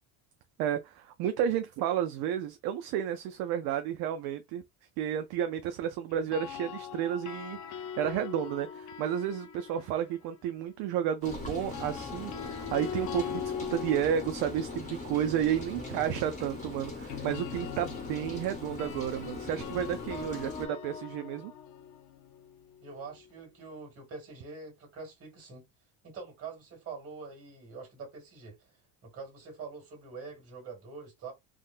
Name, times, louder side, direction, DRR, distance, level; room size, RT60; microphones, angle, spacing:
voice 1, 0.6-4.6 5.0-7.6 8.0-21.5, right 9 dB, 55° right, 0.5 m, -32 dB
sound 1, 6.1-10.3 11.5-23.4, left 8 dB, 40° left, 0.5 m, -42 dB
Rain, 11.2-20.7, left 3 dB, 15° left, 1.0 m, -41 dB
voice 2, 15.7-16.0 22.8-25.7 26.0-28.6 29.0-31.3, right 4 dB, 30° right, 1.9 m, -45 dB
3.6 x 2.1 x 2.4 m
cardioid pair, 155°, 45 cm